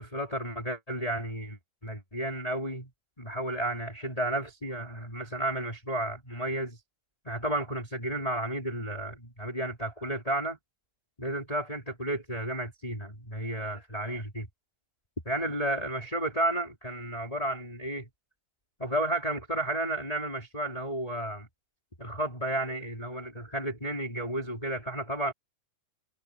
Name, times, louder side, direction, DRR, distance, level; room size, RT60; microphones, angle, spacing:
voice 1, 0.0-2.9 3.2-6.8 7.2-10.6 11.2-14.5 15.3-18.1 18.8-21.5 22.0-25.3, right 1 dB, 10° left, 4.7 m, -32 dB
omnidirectional pair, 3.7 m